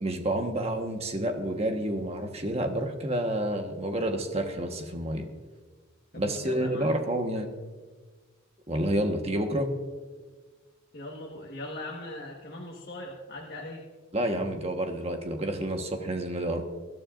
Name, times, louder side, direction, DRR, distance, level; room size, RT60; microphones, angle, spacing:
voice 1, 0.0-5.3 6.2-7.5 8.7-9.7 14.1-16.6, right 1 dB, 30° right, 4 dB, 1.3 m, -29 dB
voice 2, 6.1-7.0 10.9-13.8, left 1 dB, 50° left, -1 dB, 1.5 m, -40 dB
24.0 x 12.0 x 2.5 m, 1.3 s
head